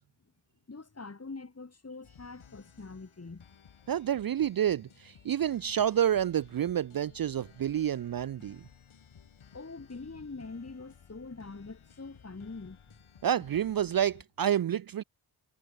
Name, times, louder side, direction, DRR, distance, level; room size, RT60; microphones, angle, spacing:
voice 1, 0.7-3.5 9.5-13.0, left 3 dB, 30° left, 2.6 m, -44 dB
sound 1, 2.0-14.2, left 7 dB, 75° left, 5.6 m, -57 dB
voice 2, 3.9-8.6 13.2-15.0, right 10 dB, 45° right, 0.5 m, -29 dB
cardioid pair, 50°, 49 cm